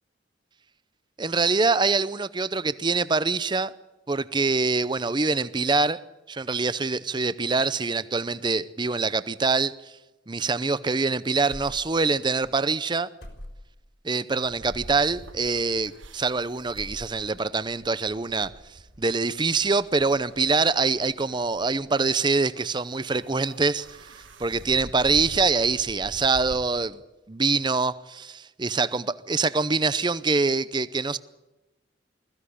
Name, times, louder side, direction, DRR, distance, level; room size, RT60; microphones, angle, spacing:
voice 1, 1.2-3.7 4.1-6.0 6.3-9.8 10.3-13.1 14.0-18.5 19.0-27.0 27.3-31.2, right 4 dB, 25° right, 0.6 m, -24 dB
sound 1, 11.5-12.2 12.4-12.6 13.2-13.8 14.7-15.0 15.8-16.4 16.7-17.4, left 1 dB, 60° left, 4.1 m, -42 dB
sound 2, 14.4-26.6, right 1 dB, 85° right, 1.7 m, -47 dB
21.0 x 15.5 x 10.0 m
head